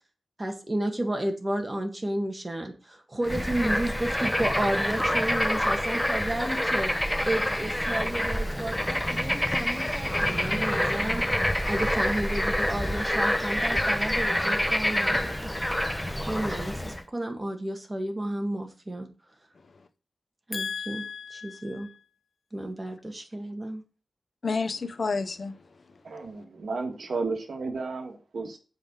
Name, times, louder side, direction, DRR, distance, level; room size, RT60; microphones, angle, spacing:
voice 1, 0.4-6.9 7.3-11.3 11.6-15.5 16.3-19.1 20.5-21.0 21.3-21.9 22.5-23.8, right 1 dB, 20° right, 1.8 m, -32 dB
Bird / Frog, 3.2-17.0, left 1 dB, 5° left, 0.7 m, -27 dB
voice 2, 20.5-21.9 24.4-25.6, left 4 dB, 50° left, 0.7 m, -31 dB
voice 3, 26.0-28.6, right 3 dB, 65° right, 1.6 m, -33 dB
7.4 x 4.9 x 7.1 m
wide cardioid pair, 140°, 0 cm